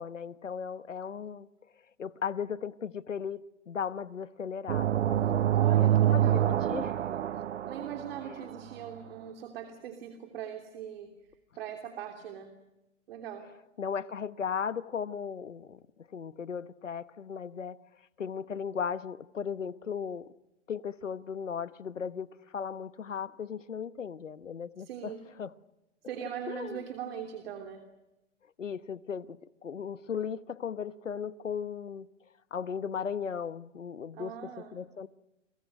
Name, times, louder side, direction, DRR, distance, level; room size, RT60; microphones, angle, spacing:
voice 1, 0.0-1.5 2.0-7.1 8.2-8.5 13.8-17.8 18.2-20.3 20.7-25.1 25.4-25.5 26.5-26.8 28.6-32.1 32.5-35.1, left 7 dB, 80° left, 1.1 m, -37 dB
sound 1, 4.7-8.5, right 12 dB, 70° right, 0.8 m, -26 dB
voice 2, 5.5-6.9 7.6-11.1 11.6-12.5 13.1-13.5 24.9-25.2 26.0-27.8 34.1-34.7, right 9 dB, 50° right, 3.1 m, -40 dB
29.5 x 24.0 x 6.6 m
figure-of-eight pair, 120°, 37 cm